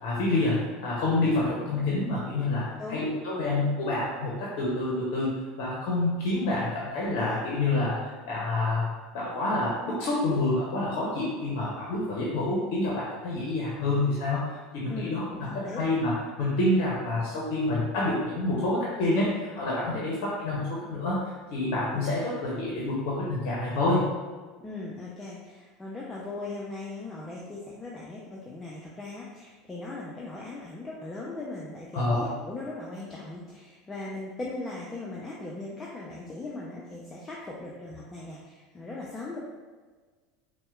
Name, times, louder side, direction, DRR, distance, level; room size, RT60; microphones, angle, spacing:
voice 1, 0.0-21.2 21.5-24.1 31.9-32.3, left 2 dB, 65° left, -5 dB, 0.6 m, -28 dB
voice 2, 2.8-3.5 14.9-15.8 19.9-20.2 21.9-22.2 24.6-39.4, left 2 dB, 20° left, -5 dB, 0.5 m, -39 dB
4.1 x 2.1 x 2.3 m, 1.4 s
hypercardioid pair, 85°, 0 cm